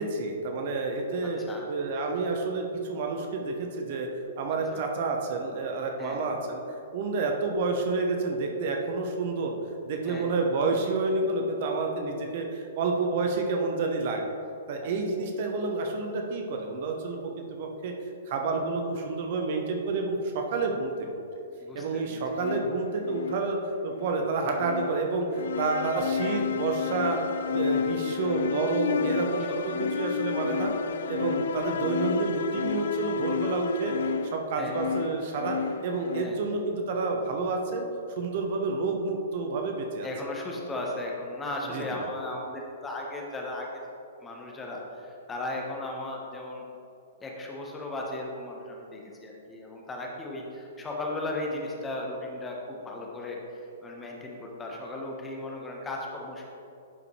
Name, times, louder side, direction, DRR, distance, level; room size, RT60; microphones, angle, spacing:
voice 1, 0.0-1.4 1.7-4.1 4.4-6.6 6.9-9.5 9.8-14.3 14.7-17.9 18.3-21.2 21.7-23.6 23.8-27.2 27.5-30.7 31.1-35.6 35.8-40.1 41.6-41.8, right 3 dB, 45° right, 2 dB, 0.8 m, -29 dB
voice 2, 21.6-22.2 29.5-29.6 34.6-34.9 36.2-36.4 40.0-43.7 44.2-46.6 47.2-56.5, left 2 dB, 15° left, -1 dB, 1.1 m, -36 dB
sound 1, 22.3-36.2, left 6 dB, 60° left, 0.3 m, -31 dB
11.0 x 4.9 x 3.3 m, 2.8 s
figure-of-eight pair, 110°, 0 cm